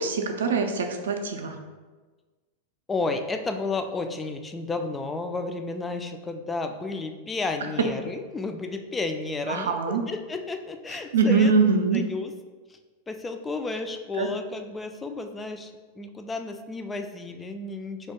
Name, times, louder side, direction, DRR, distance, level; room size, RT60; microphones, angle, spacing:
voice 1, 0.0-1.6 9.5-10.0 11.1-12.0 14.2-14.3, right 4 dB, 65° right, 4 dB, 0.4 m, -23 dB
voice 2, 2.9-11.5 11.9-12.3 13.1-18.1, left 3 dB, 15° left, 6 dB, 0.3 m, -32 dB
3.3 x 2.8 x 4.3 m, 1.3 s
figure-of-eight pair, 90°, 0 cm